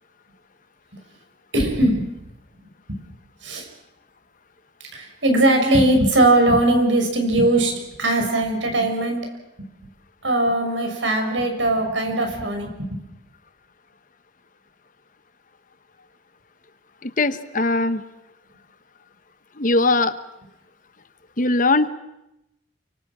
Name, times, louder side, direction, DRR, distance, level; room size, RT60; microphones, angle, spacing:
voice 1, 1.5-2.1 2.9-3.0 3.4-3.7 4.9-9.2 9.6-9.7 10.2-13.0, right 1 dB, 90° right, 3 dB, 6.7 m, -20 dB
voice 2, 17.0-18.0 19.6-20.1 21.4-21.9, left 2 dB, 45° left, 12 dB, 1.2 m, -20 dB
29.0 x 24.5 x 6.2 m, 0.89 s
head